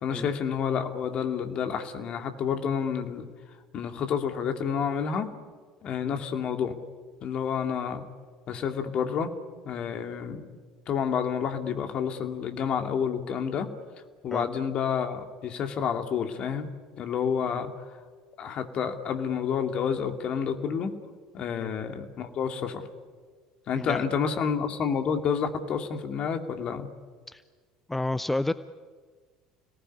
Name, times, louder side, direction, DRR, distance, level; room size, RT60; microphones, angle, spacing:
voice 1, 0.0-3.2 3.7-5.3 5.8-6.7 7.2-8.0 8.5-9.3 9.6-10.6 10.9-13.7 14.2-16.7 17.0-17.7 18.4-21.0 21.3-22.8 23.7-26.9, left 7 dB, 45° left, 6 dB, 2.6 m, -29 dB
voice 2, 23.7-24.0 27.3-27.4 27.9-28.5, left 2 dB, 10° left, 14 dB, 0.8 m, -31 dB
30.0 x 19.0 x 9.9 m, 1.5 s
figure-of-eight pair, 60°, 2 cm